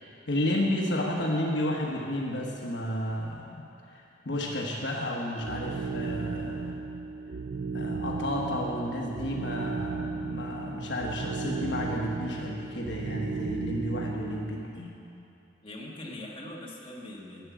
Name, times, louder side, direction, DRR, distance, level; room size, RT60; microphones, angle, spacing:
voice 1, 0.1-3.6 3.9-6.8 7.7-14.9, left 1 dB, 60° left, -1 dB, 1.2 m, -32 dB
sound 1, 5.4-14.6, right 4 dB, 55° right, 0.4 m, -35 dB
voice 2, 15.6-17.5, left 1 dB, 25° left, -4 dB, 1.5 m, -42 dB
11.0 x 9.0 x 7.4 m, 2.7 s
head